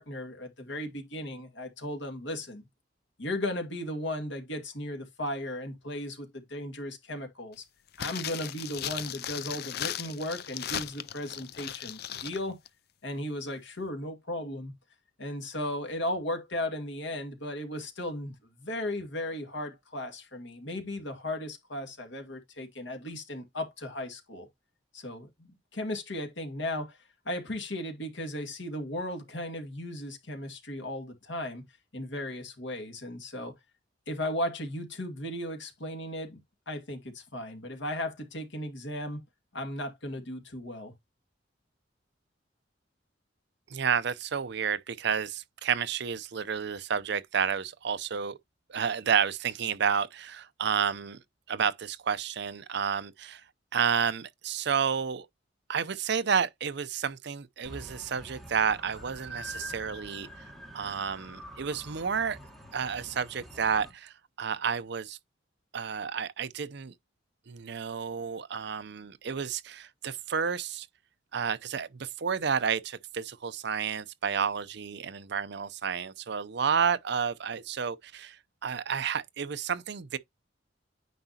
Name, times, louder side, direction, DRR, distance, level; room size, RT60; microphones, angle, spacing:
voice 1, 0.0-2.7 3.2-7.6 8.0-12.6 13.0-14.7 15.2-24.5 24.9-27.0 27.3-31.6 31.9-33.5 34.1-36.4 36.7-39.2 39.5-40.9, left 1 dB, 80° left, 2.1 m, -36 dB
sound 1, 7.9-12.4 12.7-12.8, left 10 dB, 60° left, 0.5 m, -37 dB
voice 2, 43.7-48.4 48.7-51.2 51.5-53.4 53.7-55.3 55.7-60.3 60.7-62.4 62.7-65.2 65.7-66.9 67.5-70.9 71.3-80.2, right 7 dB, 65° right, 0.6 m, -31 dB
sound 2, 57.6-63.9, equal, ahead, 2.1 m, -45 dB
9.3 x 5.0 x 2.8 m
head